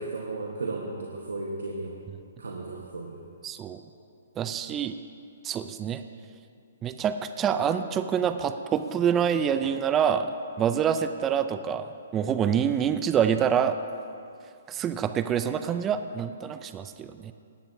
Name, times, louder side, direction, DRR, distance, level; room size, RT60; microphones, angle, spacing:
voice 1, 0.0-2.0 2.4-3.2, right 3 dB, 85° right, -1 dB, 1.3 m, -34 dB
voice 2, 3.4-3.8 4.4-4.9 5.4-6.0 6.8-10.3 10.6-13.8 14.7-17.3, right 8 dB, 20° right, 10 dB, 0.4 m, -26 dB
18.0 x 11.5 x 2.7 m, 2.4 s
hypercardioid pair, 135°, 0 cm